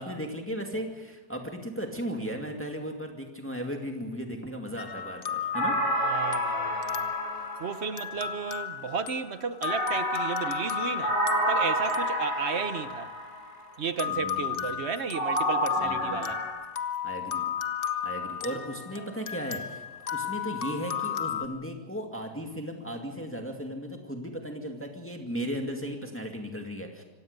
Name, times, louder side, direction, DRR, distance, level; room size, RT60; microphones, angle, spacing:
voice 1, 0.0-5.8 14.1-14.6 15.7-16.3 17.0-17.5 18.0-19.8 20.1-27.0, equal, 5° left, 2.1 m, -36 dB
sound 1, 4.8-13.4 14.0-21.5, left 9 dB, 40° left, 0.9 m, -34 dB
sound 2, 5.5-8.4 9.6-13.5 15.1-16.5, right 1 dB, 20° right, 5.1 m, -30 dB
voice 2, 6.0-7.1 7.6-11.2 11.5-13.1 13.8-16.4, right 6 dB, 50° right, 0.9 m, -33 dB
25.5 x 17.0 x 6.7 m
omnidirectional pair, 1.8 m